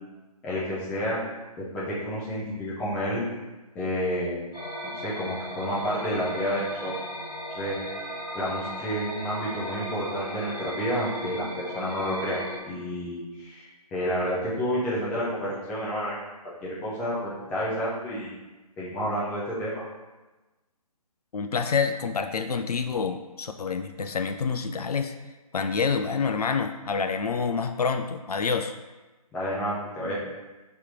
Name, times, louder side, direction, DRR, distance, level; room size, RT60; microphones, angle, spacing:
voice 1, 0.4-1.2 1.6-3.2 3.7-4.4 4.9-6.9 7.5-8.1 8.3-16.2 16.4-18.3 18.8-19.8 29.3-30.2, equal, 5° left, -8 dB, 0.5 m, -30 dB
sound 1, 4.5-12.6, equal, 90° left, 1.3 m, -36 dB
voice 2, 21.3-25.1 25.5-28.7, left 5 dB, 75° left, 6 dB, 0.4 m, -27 dB
3.4 x 2.9 x 4.7 m, 1.2 s
figure-of-eight pair, 150°, 20 cm